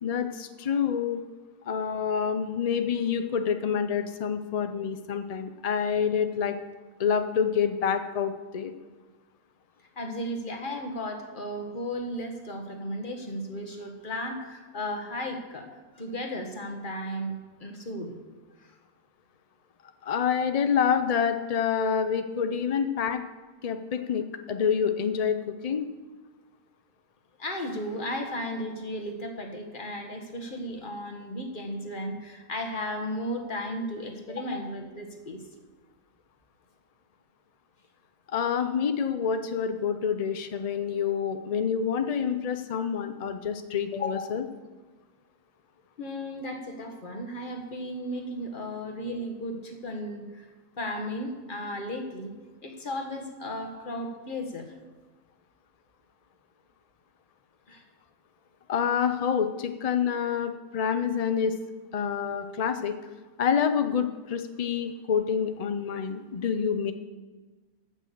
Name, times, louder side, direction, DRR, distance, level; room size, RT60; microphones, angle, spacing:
voice 1, 0.0-1.2 1.7-6.6 7.0-8.7 20.0-23.2 23.6-25.9 34.5-34.6 38.3-44.5 58.7-61.6 61.9-63.0 63.4-66.9, left 7 dB, 60° left, 8 dB, 0.4 m, -27 dB
voice 2, 10.0-18.2 18.6-18.7 27.4-35.4 46.0-50.5 50.8-52.3 52.6-54.7 57.7-57.8, equal, 35° left, 4 dB, 1.6 m, -35 dB
15.0 x 6.3 x 6.7 m, 1.3 s
omnidirectional pair, 1.5 m